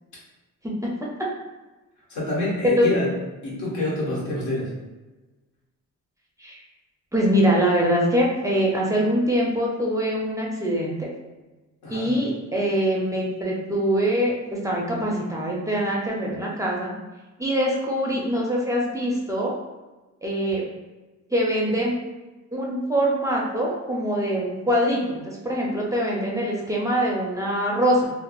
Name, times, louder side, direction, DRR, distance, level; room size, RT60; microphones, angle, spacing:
voice 1, 2.1-3.1 3.4-4.7 11.8-12.1, left 1 dB, 70° left, -6 dB, 1.2 m, -27 dB
voice 2, 7.1-11.1 11.9-16.9 17.4-19.5 20.2-20.6 21.3-22.0 22.5-28.1, equal, 10° right, -3 dB, 0.5 m, -23 dB
3.3 x 2.0 x 2.3 m, 1.2 s
cardioid pair, 90°, 30 cm